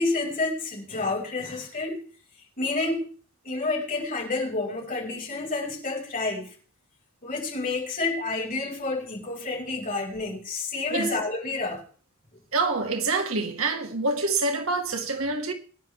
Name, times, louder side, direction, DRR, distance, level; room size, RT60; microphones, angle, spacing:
voice 1, 0.0-2.1 2.6-3.1 3.4-6.5 7.2-11.8, left 3 dB, 40° left, 5.9 m, -29 dB
voice 2, 12.5-15.5, right 3 dB, 90° right, 2.3 m, -26 dB
22.0 x 11.0 x 3.6 m
head